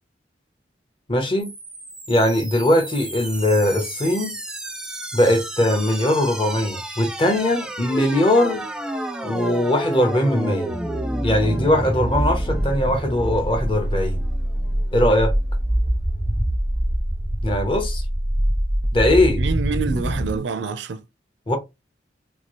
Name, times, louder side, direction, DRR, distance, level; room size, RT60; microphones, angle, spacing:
voice 1, 1.1-1.5 2.1-4.3 5.1-8.7 9.2-10.7 11.2-14.2 14.9-15.3 17.4-18.0 18.9-19.4 21.5-21.6, left 1 dB, 30° left, 0.7 m, -20 dB
sound 1, 1.4-20.4, right 1 dB, 5° right, 0.3 m, -26 dB
voice 2, 19.4-21.0, right 4 dB, 80° right, 0.5 m, -26 dB
2.8 x 2.3 x 3.0 m
head